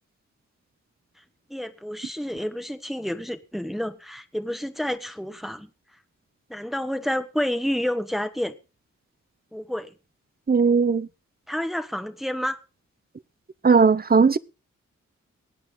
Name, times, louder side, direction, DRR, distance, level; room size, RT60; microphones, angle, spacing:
voice 1, 1.5-5.7 6.5-8.5 9.5-9.9 11.5-12.6, equal, ahead, 1.3 m, -29 dB
voice 2, 10.5-11.1 13.6-14.4, right 5 dB, 30° right, 0.7 m, -18 dB
22.0 x 8.7 x 3.8 m
cardioid pair, 60°, 30 cm